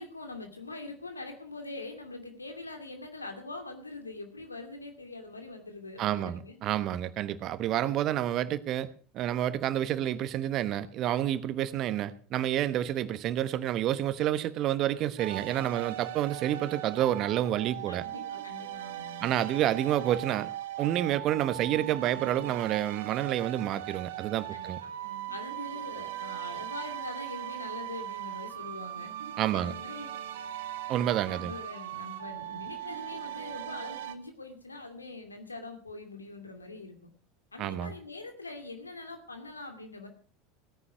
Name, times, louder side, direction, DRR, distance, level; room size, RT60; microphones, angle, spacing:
voice 1, 0.0-6.6 17.9-19.3 24.5-24.9 25.3-29.1 29.5-30.2 31.3-37.0 37.5-40.1, left 2 dB, 90° left, 2.5 m, -43 dB
voice 2, 6.0-8.9 9.1-18.0 19.2-20.5 20.8-24.8 29.4-29.7 30.9-31.5 37.6-37.9, right 12 dB, 45° right, 1.1 m, -29 dB
sound 1, 15.2-34.1, right 13 dB, 70° right, 1.1 m, -39 dB
17.0 x 9.8 x 6.0 m
figure-of-eight pair, 75°, 0 cm